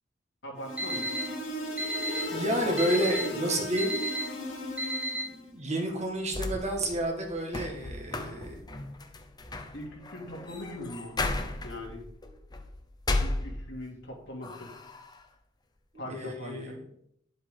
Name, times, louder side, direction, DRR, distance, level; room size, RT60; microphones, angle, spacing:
voice 1, 0.4-1.1 2.6-2.9 3.3-3.4 9.7-12.0 13.2-14.7 16.0-16.7, equal, 60° left, -1 dB, 2.6 m, -41 dB
sound 1, 0.6-5.4, left 1 dB, 90° left, 2.2 m, -36 dB
Alarm, 0.8-1.2 1.8-2.2 2.8-3.2 3.8-4.2 4.8-5.2, right 1 dB, 5° right, 0.9 m, -31 dB
voice 2, 2.3-3.9 5.0-8.6 15.9-16.9, right 1 dB, 35° right, 1 dB, 1.7 m, -31 dB
sound 2, 6.0-14.0 14.4-15.2, left 2 dB, 20° left, 0.8 m, -35 dB
10.0 x 8.1 x 3.8 m, 0.70 s
head